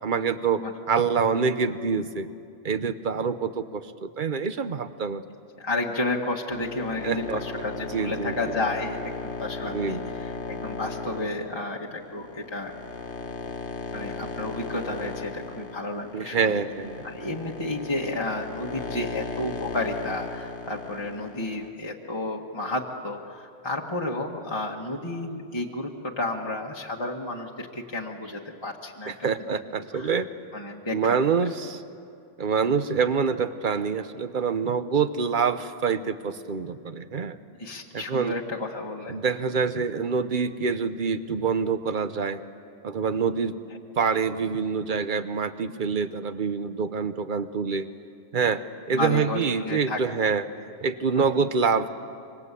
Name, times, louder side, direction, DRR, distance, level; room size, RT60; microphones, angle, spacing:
voice 1, 0.0-2.3 2.6-5.2 7.0-7.4 7.9-8.3 9.7-10.0 16.1-17.1 29.1-30.3 30.9-31.8 32.4-37.4 37.9-38.3 39.1-42.4 42.8-43.6 44.0-47.9 48.3-50.4 50.8-51.9, right 5 dB, 45° right, 11 dB, 1.1 m, -26 dB
voice 2, 5.6-9.0 9.2-12.8 13.9-16.6 17.0-30.2 30.5-31.2 37.6-39.2 48.9-50.0 51.1-51.2, left 2 dB, 20° left, -1 dB, 1.6 m, -32 dB
sound 1, 6.5-21.7, left 4 dB, 65° left, 1.7 m, -36 dB
26.5 x 25.0 x 8.4 m, 2.5 s
omnidirectional pair, 1.2 m